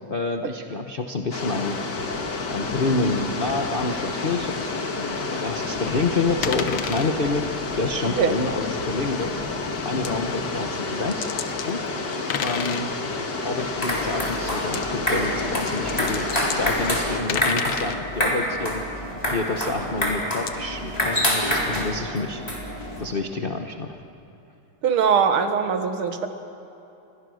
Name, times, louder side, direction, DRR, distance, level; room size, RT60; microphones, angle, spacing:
voice 1, 0.1-1.8 2.5-9.4 9.8-11.3 11.7-12.9 13.4-16.2 16.5-22.4 23.0-24.0, left 3 dB, 35° left, 4 dB, 0.9 m, -28 dB
sound 1, 1.3-17.2, left 3 dB, 55° left, 2.3 m, -30 dB
sound 2, 6.4-7.1 9.2-9.3 10.0-10.1 11.0-11.7 12.1-12.9 14.6-14.9 15.4-18.0 20.5-20.6, left 8 dB, 75° left, 1.9 m, -30 dB
sound 3, 13.6-23.0, equal, 15° left, 4.0 m, -27 dB
voice 2, 24.8-26.3, right 6 dB, 80° right, 7 dB, 2.3 m, -21 dB
30.0 x 23.5 x 6.4 m, 2.9 s
omnidirectional pair, 2.3 m